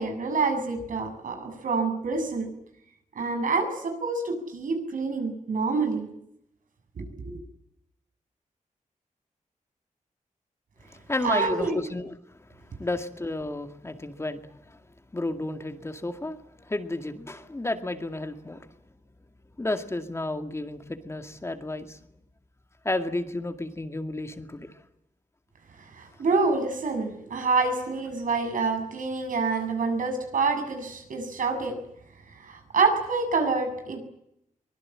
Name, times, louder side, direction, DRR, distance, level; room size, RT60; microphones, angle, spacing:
voice 1, 0.0-2.5 3.1-6.1 7.0-7.4 11.2-11.8 26.0-31.8 32.4-34.0, right 4 dB, 85° right, 5 dB, 7.4 m, -27 dB
voice 2, 10.9-14.8 15.1-18.7 19.6-22.0 22.8-24.7, left 2 dB, 20° left, 7 dB, 2.2 m, -32 dB
24.0 x 21.0 x 8.8 m, 0.76 s
wide cardioid pair, 135°, 13 cm